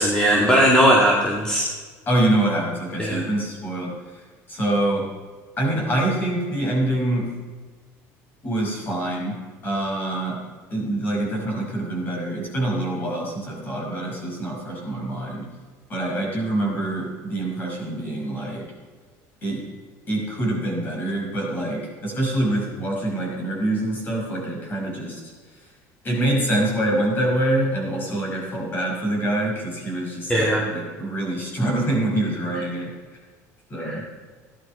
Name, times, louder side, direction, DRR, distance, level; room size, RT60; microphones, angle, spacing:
voice 1, 0.0-1.7 3.0-3.2 30.3-30.6 33.8-34.0, equal, 10° left, -2 dB, 2.2 m, -18 dB
voice 2, 2.1-5.1 5.6-7.3 8.4-9.4 9.6-10.4 10.7-15.5 15.9-18.7 19.4-19.6 20.1-25.7 26.0-32.9 33.7-34.0, right 1 dB, 30° left, -1 dB, 5.6 m, -25 dB
16.5 x 11.0 x 5.5 m, 1.4 s
cardioid pair, 155°, 7 cm